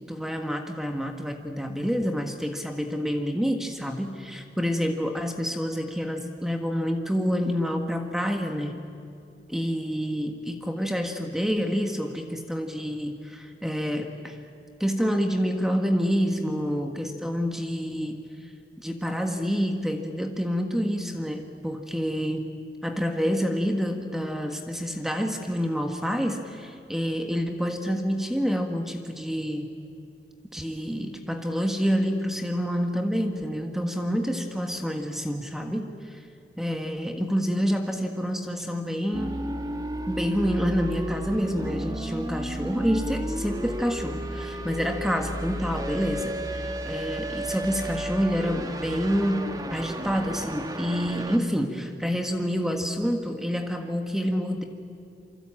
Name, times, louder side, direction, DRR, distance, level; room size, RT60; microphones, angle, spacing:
voice 1, 0.1-8.8 9.5-14.4 14.8-18.5 18.8-22.5 22.8-29.7 30.5-36.2 36.6-39.4 40.1-54.6, equal, ahead, 4 dB, 1.5 m, -28 dB
sound 1, 39.1-51.4, right 1 dB, 20° right, 1.3 m, -33 dB
27.5 x 24.5 x 8.8 m, 2.6 s
head